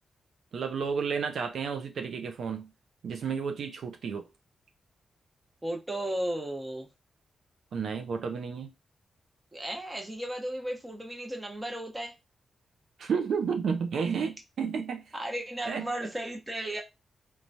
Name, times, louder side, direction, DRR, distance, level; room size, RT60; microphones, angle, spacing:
voice 1, 0.5-2.7 3.0-4.3 7.7-8.7 13.0-15.1 15.7-15.9, right 6 dB, 75° right, 0.4 m, -31 dB
voice 2, 5.6-6.9 9.5-12.1 15.1-16.8, right 1 dB, 15° right, 0.8 m, -35 dB
3.0 x 2.2 x 2.6 m
cardioid pair, 85°, 0 cm